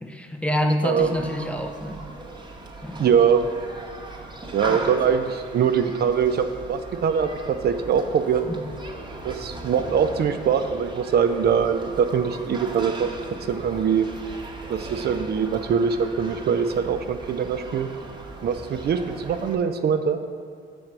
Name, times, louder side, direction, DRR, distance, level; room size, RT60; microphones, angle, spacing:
voice 1, 0.0-2.0 2.8-3.1 4.7-4.9 8.4-8.6, equal, 5° left, 4 dB, 0.5 m, -27 dB
voice 2, 0.8-1.1 3.0-3.4 4.5-8.4 9.2-13.1 13.5-14.1 14.7-17.9 18.4-20.2, right 7 dB, 55° right, 8 dB, 0.5 m, -22 dB
Human group actions, 1.0-19.6, right 2 dB, 20° right, 0.9 m, -38 dB
6.6 x 4.3 x 6.0 m, 2.3 s
cardioid pair, 90°, 20 cm